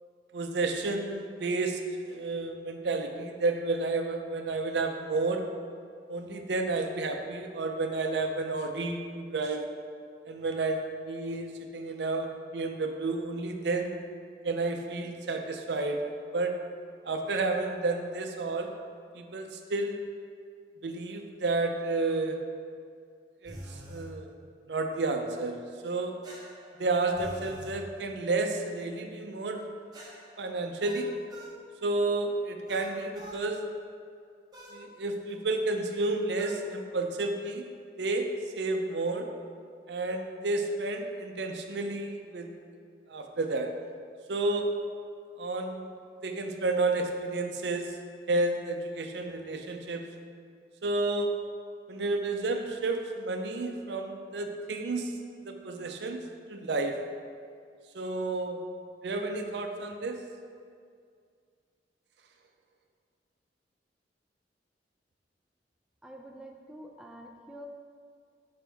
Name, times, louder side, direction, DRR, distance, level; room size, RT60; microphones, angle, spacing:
voice 1, 0.3-5.5 6.1-9.7 10.3-12.3 12.5-13.9 14.4-16.0 16.3-16.5 17.0-18.7 19.1-20.0 20.8-22.4 23.4-23.6 23.9-24.3 24.7-26.1 26.8-29.6 30.4-31.1 31.8-33.6 34.7-37.7 38.0-38.3 38.6-39.3 39.9-42.5 43.1-43.7 44.3-44.7 45.4-45.9 46.2-47.9 48.3-50.0 50.8-51.3 51.9-55.1 55.5-56.2 56.5-57.0 57.9-58.6 59.0-60.2, right 2 dB, 70° right, 4 dB, 0.5 m, -31 dB
sound 1, 23.5-24.1 26.2-27.8 29.9-31.6 32.7-33.4 34.5-34.8 36.4-36.6, equal, 25° right, 1.0 m, -46 dB
voice 2, 66.0-67.7, right 1 dB, 5° right, 1 dB, 0.4 m, -47 dB
6.2 x 5.1 x 3.4 m, 2.2 s
head